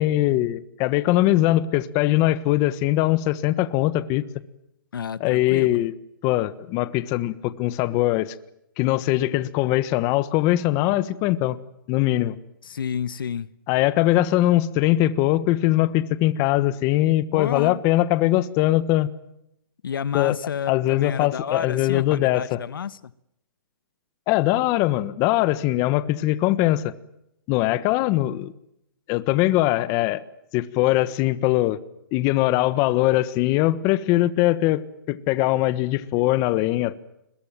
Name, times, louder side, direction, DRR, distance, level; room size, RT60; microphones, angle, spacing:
voice 1, 0.0-4.2 5.2-5.9 6.2-8.3 8.8-11.6 11.9-12.3 13.7-19.1 20.1-20.4 20.7-22.6 24.3-26.9 27.5-28.5 29.1-30.2 30.5-31.8 32.1-37.0, left 16 dB, 30° left, 1.4 m, -21 dB
voice 2, 4.9-5.8 12.6-13.5 17.3-17.8 19.8-23.0 28.3-28.4, left 7 dB, 75° left, 1.2 m, -30 dB
29.5 x 22.0 x 7.4 m
hypercardioid pair, 150°, 11 cm